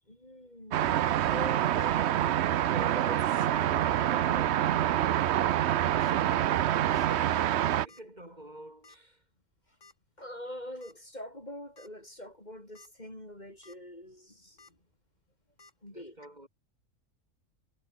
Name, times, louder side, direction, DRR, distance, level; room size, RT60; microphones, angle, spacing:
voice 1, 0.0-4.9 7.2-7.4 9.7-9.8 10.2-14.8 15.8-16.2, left 1 dB, 30° left, 6.1 m, -44 dB
sound 1, 0.7-7.9, right 11 dB, 60° right, 0.8 m, -26 dB
voice 2, 5.9-6.4 7.8-9.3 15.9-16.5, right 1 dB, 30° right, 6.9 m, -50 dB
sound 2, 6.0-6.1 6.9-7.2 7.4-7.5 7.9-8.0 8.8-9.1 9.8-9.9 10.8-10.9 11.4-11.5 11.8-11.9 12.6-12.9 13.3-13.8 14.6-14.7 15.6-15.7, left 4 dB, 60° left, 3.1 m, -56 dB
omnidirectional pair, 1.5 m